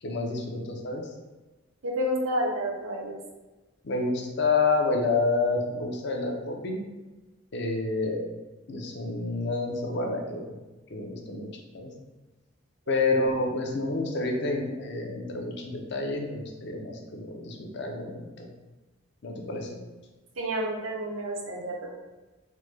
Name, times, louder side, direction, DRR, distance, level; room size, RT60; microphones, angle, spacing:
voice 1, 0.0-1.1 3.8-6.8 7.5-8.3 8.7-10.6 10.9-11.5 11.7-11.9 12.9-18.5 19.2-19.8, left 3 dB, 55° left, 2 dB, 0.4 m, -29 dB
voice 2, 1.8-3.2 20.4-22.0, equal, 80° right, 0 dB, 0.6 m, -30 dB
3.2 x 2.1 x 3.2 m, 1.2 s
head